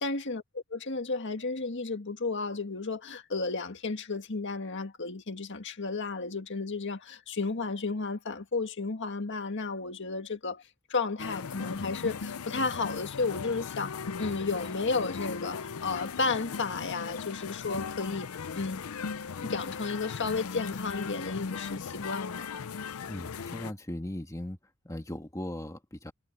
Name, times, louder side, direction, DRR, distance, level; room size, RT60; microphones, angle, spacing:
voice 1, 0.0-10.6 10.9-18.8 19.4-22.5, left 3 dB, 60° left, 1.8 m, -33 dB
sound 1, 11.2-23.7, left 5 dB, 90° left, 0.6 m, -38 dB
voice 2, 23.1-24.6 24.8-26.1, left 1 dB, 15° left, 1.7 m, -38 dB
head